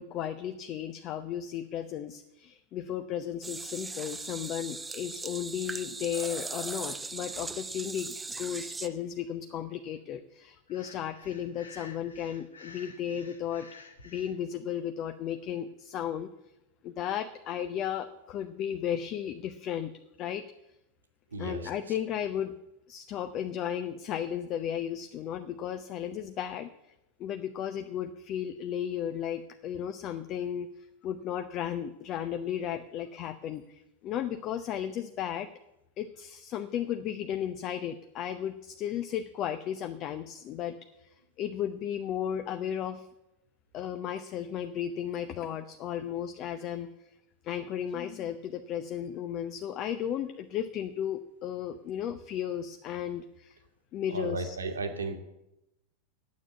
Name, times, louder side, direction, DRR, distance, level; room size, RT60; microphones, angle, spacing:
voice 1, 0.0-13.7 14.0-16.3 16.8-19.9 20.2-20.4 21.4-22.5 22.9-26.7 27.2-35.5 36.0-43.1 43.7-46.9 47.4-53.6 53.9-54.6, left 9 dB, 35° left, 9 dB, 0.7 m, -34 dB
sound 1, 3.4-8.9, right 3 dB, 10° right, 0.6 m, -39 dB
Breathing, 10.7-14.3, left 3 dB, 70° left, 1.3 m, -51 dB
voice 2, 21.3-21.7 54.1-55.2, right 3 dB, 70° right, 6 dB, 1.7 m, -34 dB
9.6 x 8.5 x 9.3 m, 0.90 s
figure-of-eight pair, 90°, 0 cm